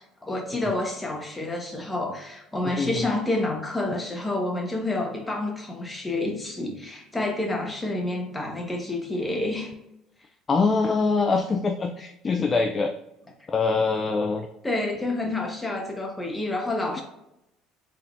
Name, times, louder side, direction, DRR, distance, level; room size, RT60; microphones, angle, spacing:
voice 1, 0.0-9.7 14.6-17.0, left 2 dB, 15° left, 0 dB, 1.3 m, -29 dB
voice 2, 2.6-3.1 10.5-12.9 13.5-14.5, left 4 dB, 30° left, 4 dB, 0.4 m, -24 dB
4.2 x 3.6 x 2.6 m, 0.86 s
supercardioid pair, 80°, 0 cm